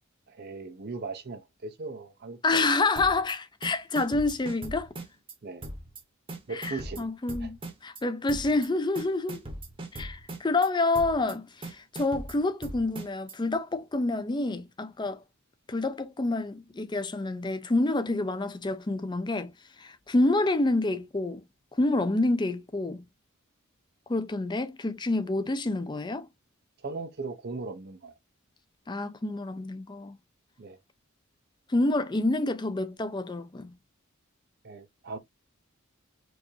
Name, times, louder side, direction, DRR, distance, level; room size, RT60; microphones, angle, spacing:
voice 1, 0.3-2.7 5.4-5.6 6.5-7.1 7.4-7.5 26.8-28.1 30.6-30.8 34.6-35.2, right 3 dB, 50° right, 0.6 m, -38 dB
voice 2, 2.4-4.9 6.5-9.4 9.9-15.2 15.7-19.5 19.8-21.4 21.7-23.0 24.1-26.3 28.9-30.2 31.7-33.8, left 2 dB, 20° left, 0.5 m, -28 dB
sound 1, 3.0-3.3 3.6-5.3 5.6-6.0 6.3-8.0 8.3-8.7 9.0-10.7 10.9-11.3 11.6-13.3, right 1 dB, 25° right, 0.9 m, -39 dB
4.6 x 2.5 x 2.7 m
head